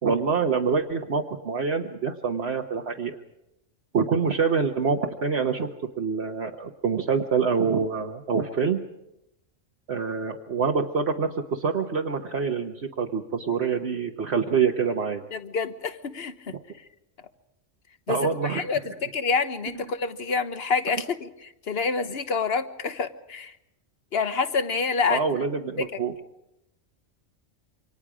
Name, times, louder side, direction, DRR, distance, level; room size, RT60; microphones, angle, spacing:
voice 1, 0.0-3.2 3.9-5.7 6.0-8.8 9.9-15.2 16.5-16.6 18.1-18.7 25.1-26.1, right 5 dB, 60° right, 1 dB, 1.4 m, -26 dB
voice 2, 15.3-16.6 18.1-23.5 24.1-25.2 25.8-25.9, left 5 dB, 55° left, 10 dB, 1.4 m, -27 dB
28.0 x 25.0 x 5.0 m, 0.86 s
omnidirectional pair, 1.3 m